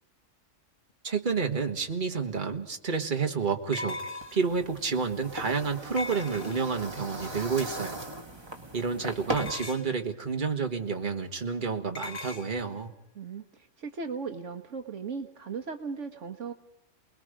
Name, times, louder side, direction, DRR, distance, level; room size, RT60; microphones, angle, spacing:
voice 1, 1.0-4.0 4.3-8.0 8.7-12.9, right 5 dB, 40° right, 4 dB, 1.8 m, -30 dB
sound 1, 2.2-2.3 3.7-4.6 6.0-6.9 9.3-10.0 12.0-12.5, left 2 dB, 45° left, 1.5 m, -38 dB
sound 2, 4.2-9.5, right 1 dB, 20° right, 2.2 m, -38 dB
voice 2, 13.1-16.5, right 5 dB, 70° right, 5 dB, 1.5 m, -37 dB
29.0 x 20.5 x 5.1 m, 0.82 s
omnidirectional pair, 1.3 m